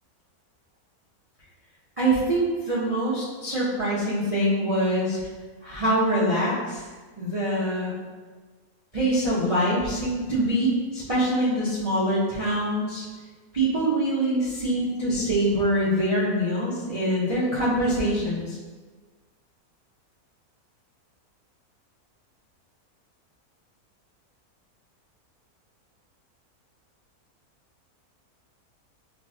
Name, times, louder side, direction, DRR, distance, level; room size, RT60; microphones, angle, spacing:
voice 1, 2.0-5.3 5.6-6.9 7.2-7.9 8.9-13.0 13.5-18.6, right 1 dB, 60° right, -9 dB, 0.3 m, -24 dB
5.5 x 2.0 x 2.6 m, 1.4 s
omnidirectional pair, 1.6 m